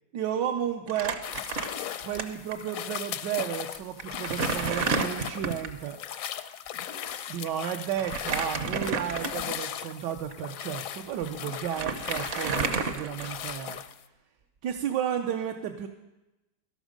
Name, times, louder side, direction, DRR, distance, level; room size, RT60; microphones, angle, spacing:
voice 1, 0.1-1.2 2.0-6.0 7.3-13.8 14.6-15.9, right 9 dB, 80° right, 3 dB, 1.3 m, -32 dB
Crumpling crinkling, 0.9-2.2 2.5-2.6 3.5-3.6 4.0-5.8 8.0-9.6 10.2-10.3 11.2-11.3 11.5-13.6, right 5 dB, 55° right, 1.0 m, -31 dB
sound 1, 1.2-14.0, left 9 dB, 65° left, 0.8 m, -38 dB
12.5 x 12.5 x 5.1 m, 0.99 s
omnidirectional pair, 1.9 m